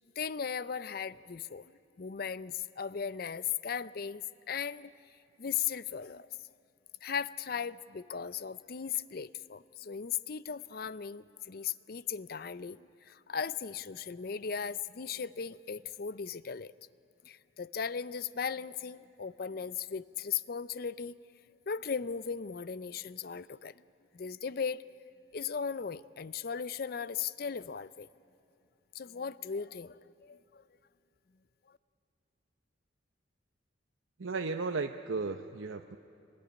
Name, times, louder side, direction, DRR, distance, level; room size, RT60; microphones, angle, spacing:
voice 1, 0.2-1.7 2.0-4.9 5.4-6.3 7.0-16.7 17.2-21.2 21.7-23.8 24.1-24.9 25.3-28.1 28.9-30.6, left 7 dB, 50° left, 17 dB, 0.5 m, -37 dB
voice 2, 34.2-36.0, right 4 dB, 75° right, 6 dB, 0.7 m, -35 dB
24.5 x 19.5 x 9.9 m, 3.0 s
head